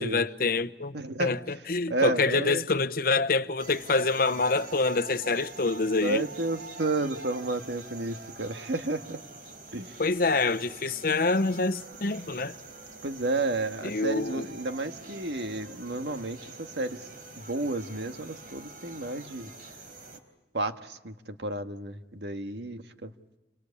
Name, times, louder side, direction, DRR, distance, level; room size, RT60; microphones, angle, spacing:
voice 1, 0.0-6.2 10.0-12.6 13.8-14.5, left 3 dB, 55° left, 0.9 m, -26 dB
voice 2, 0.9-1.3 1.9-2.7 6.0-9.2 9.7-9.9 13.0-17.0 17.4-19.5 20.5-23.1, right 2 dB, 75° right, 1.6 m, -31 dB
sound 1, 3.6-20.2, right 3 dB, 55° right, 3.9 m, -45 dB
29.0 x 24.5 x 8.4 m
head